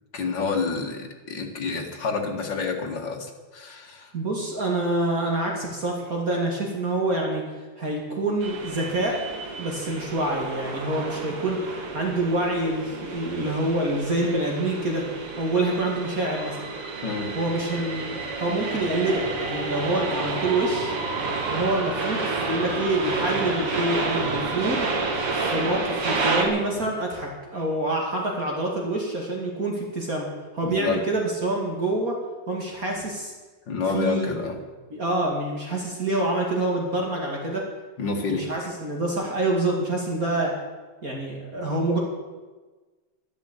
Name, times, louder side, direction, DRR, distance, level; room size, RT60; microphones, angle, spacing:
voice 1, 0.1-4.1 17.0-17.3 30.6-31.0 33.7-34.6 38.0-38.5, left 4 dB, 55° left, 2 dB, 2.6 m, -28 dB
voice 2, 4.1-7.4 7.8-9.2 9.6-15.0 15.4-16.6 17.3-21.0 21.5-24.9 25.3-30.3 30.5-32.1 32.5-33.3 33.9-34.4 34.9-37.6 38.3-40.5 41.0-42.0, right 2 dB, 40° right, -1 dB, 2.8 m, -26 dB
sound 1, 8.4-26.4, right 3 dB, 85° right, 3.2 m, -30 dB
12.0 x 12.0 x 8.4 m, 1.3 s
omnidirectional pair, 2.4 m